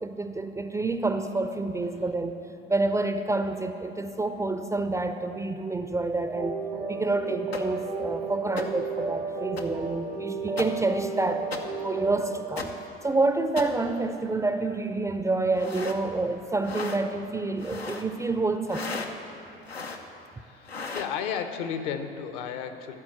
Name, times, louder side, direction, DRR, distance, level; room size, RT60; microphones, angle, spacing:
voice 1, 0.0-2.3 2.7-6.5 6.9-11.5 11.8-12.7 13.0-18.9, right 2 dB, 10° right, 8 dB, 0.4 m, -28 dB
sound 1, 6.3-12.4, right 4 dB, 85° right, 1.4 m, -33 dB
sound 2, 7.5-7.6 8.6-8.7 9.6-9.7 10.6-10.7 11.5-11.6 12.6-12.7 13.6-13.7 15.5-16.0 16.6-17.0 17.6-18.1 18.7-19.1 19.7-20.0 20.6-21.1, left 4 dB, 90° left, 0.6 m, -35 dB
voice 2, 20.4-23.0, left 7 dB, 60° left, 8 dB, 0.8 m, -33 dB
12.0 x 4.5 x 8.4 m, 2.8 s
figure-of-eight pair, 65°, 30 cm